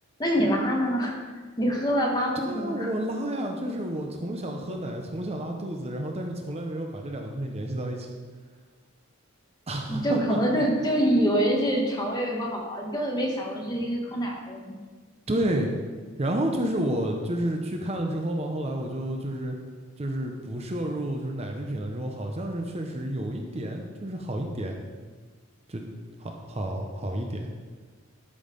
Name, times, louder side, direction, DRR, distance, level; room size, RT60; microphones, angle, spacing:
voice 1, 0.2-1.2 1.6-2.9 9.9-14.7, equal, 20° left, -1 dB, 1.6 m, -25 dB
voice 2, 2.4-8.1 9.7-10.4 15.3-15.8 16.2-19.6 20.0-24.8 25.7-25.8 26.2-27.5, right 1 dB, 30° right, 2 dB, 0.8 m, -30 dB
12.5 x 5.7 x 5.2 m, 1.5 s
head